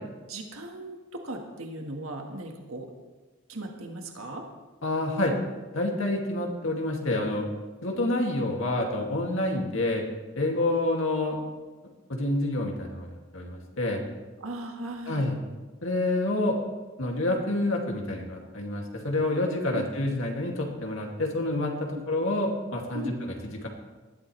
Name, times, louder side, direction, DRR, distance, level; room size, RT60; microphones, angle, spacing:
voice 1, 0.3-2.9 3.5-4.5 14.4-15.3 19.7-19.9 21.9-22.0 22.9-23.1, right 1 dB, 85° right, 2 dB, 1.6 m, -37 dB
voice 2, 4.8-5.3 5.7-7.5 7.8-10.0 10.4-11.4 12.1-14.0 15.1-15.4 15.8-16.6 17.0-23.7, left 2 dB, 70° left, 0 dB, 2.3 m, -28 dB
20.0 x 13.5 x 3.3 m, 1.3 s
head